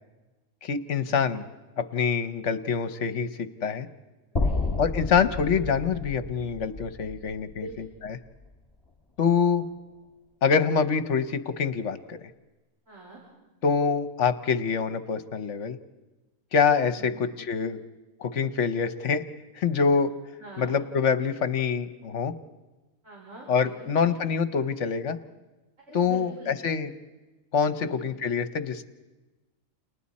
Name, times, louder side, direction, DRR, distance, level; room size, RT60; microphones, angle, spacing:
voice 1, 0.6-1.4 1.8-3.9 4.8-8.2 9.2-9.6 10.4-12.2 13.6-15.8 16.5-17.8 18.2-19.2 19.5-20.1 20.6-22.3 23.5-25.2 25.9-26.9 27.5-28.8, left 6 dB, 60° left, 11 dB, 1.2 m, -25 dB
voice 2, 4.3-4.6 7.6-7.7 12.9-13.2 16.9-17.2 20.4-20.7 23.0-24.1 25.8-26.6 27.7-28.0, right 3 dB, 60° right, -4 dB, 5.5 m, -44 dB
sound 1, 4.4-8.5, left 3 dB, 20° left, 2.2 m, -31 dB
29.5 x 29.0 x 4.2 m, 1.2 s
omnidirectional pair, 1.5 m